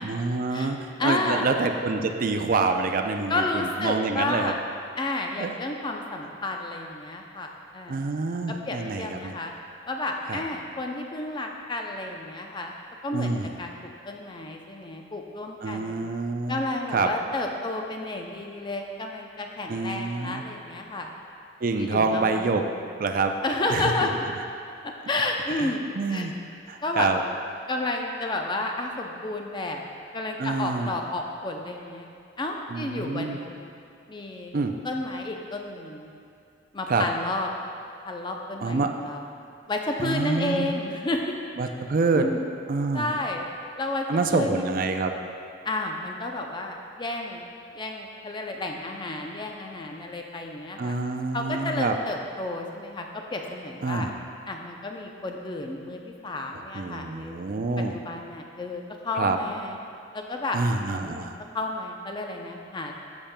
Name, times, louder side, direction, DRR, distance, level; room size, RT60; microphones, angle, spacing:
voice 1, 0.0-4.5 5.4-5.5 7.9-9.3 10.3-10.4 13.1-13.5 15.6-16.6 16.9-17.1 19.7-20.4 21.6-22.6 23.0-23.3 23.7-23.9 25.6-25.7 26.0-26.3 26.7-27.2 30.4-30.9 32.7-33.4 34.5-34.7 36.9-37.0 38.6-38.9 40.0-40.7 41.6-42.3 42.7-43.1 44.1-45.1 50.8-51.9 53.8-54.1 56.5-58.0 59.1-59.4 60.5-61.4, right 3 dB, 45° right, 5 dB, 0.4 m, -26 dB
voice 2, 1.0-1.5 3.3-4.6 5.0-8.0 8.7-9.5 9.9-12.7 13.0-13.7 14.1-16.0 16.5-21.1 21.8-22.8 23.4-24.1 24.8-26.3 26.8-27.1 27.7-29.8 30.1-32.1 32.4-33.7 34.1-34.5 34.8-36.1 36.7-37.5 38.1-39.3 39.7-41.3 42.1-42.5 42.9-43.4 43.8-44.0 44.3-44.7 45.6-47.5 47.7-51.0 51.3-54.1 54.5-59.8 60.1-60.6 60.9-62.9, left 2 dB, 25° left, 2 dB, 0.5 m, -31 dB
10.0 x 7.1 x 2.2 m, 2.5 s
head